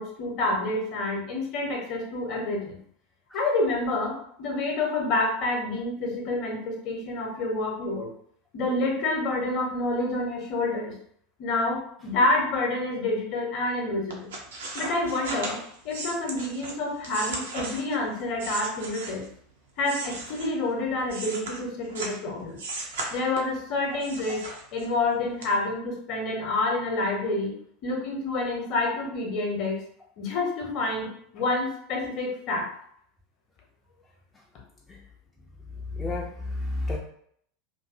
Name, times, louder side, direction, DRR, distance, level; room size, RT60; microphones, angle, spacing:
voice 1, 0.0-2.8 3.3-8.1 8.5-10.9 11.4-14.3 14.7-19.2 19.8-22.6 23.1-24.4 24.7-27.5 27.8-29.8 30.2-32.7, left 2 dB, 45° left, 0 dB, 0.8 m, -28 dB
sound 1, 14.1-19.4 19.8-22.2 22.6-23.6 24.0-25.0 25.4-25.5, right 2 dB, 65° right, 0.6 m, -36 dB
voice 2, 35.7-37.0, left 2 dB, 10° left, -3 dB, 0.4 m, -32 dB
2.6 x 2.5 x 2.5 m, 0.65 s
figure-of-eight pair, 80°, 0 cm